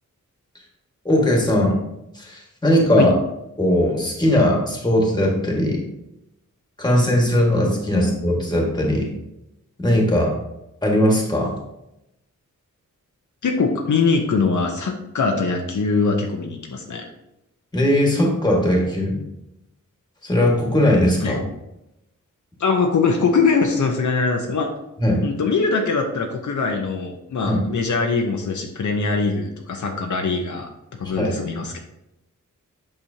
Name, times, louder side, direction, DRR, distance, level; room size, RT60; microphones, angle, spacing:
voice 1, 1.0-1.7 2.1-3.1 3.6-5.8 6.8-9.1 9.8-10.3 10.8-11.5 17.7-19.2 20.2-21.4 25.0-25.2 27.4-27.6 31.0-31.3, left 1 dB, 15° left, -1 dB, 1.7 m, -19 dB
voice 2, 13.4-17.0 21.2-21.5 22.6-24.7 25.2-30.7 31.0-31.8, left 4 dB, 70° left, 2 dB, 0.8 m, -22 dB
8.7 x 6.1 x 2.8 m, 0.87 s
wide cardioid pair, 145°, 31 cm